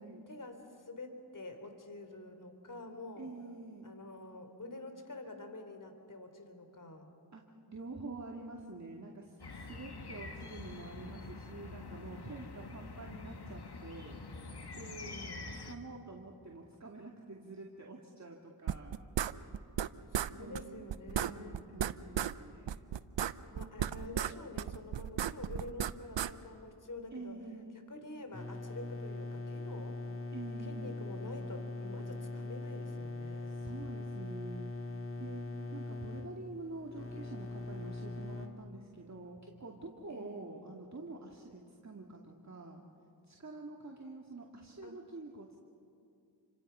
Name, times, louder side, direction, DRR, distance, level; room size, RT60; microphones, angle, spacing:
voice 1, 0.3-3.3 3.8-7.2 15.0-15.4 20.1-21.6 23.5-27.4 27.7-30.0 30.6-33.6 40.1-40.5 44.8-45.0, left 2 dB, 45° left, 6 dB, 3.3 m, -48 dB
voice 2, 3.2-3.9 7.3-14.2 14.7-15.1 15.7-19.0 20.3-22.8 27.1-27.7 30.3-31.0 33.6-34.7 35.2-35.4 35.7-42.8 43.3-45.6, right 3 dB, 40° right, 0 dB, 2.4 m, -47 dB
sound 1, 9.4-15.7, left 3 dB, 60° left, 2.0 m, -46 dB
sound 2, 18.7-19.9 20.1-20.3 20.6-20.7 20.9-22.3 22.7-24.3 24.6-26.3, right 9 dB, 75° right, 0.8 m, -34 dB
sound 3, 28.3-38.5, left 2 dB, 30° left, 2.7 m, -41 dB
29.5 x 25.5 x 5.7 m, 2.7 s
cardioid pair, 50°, 44 cm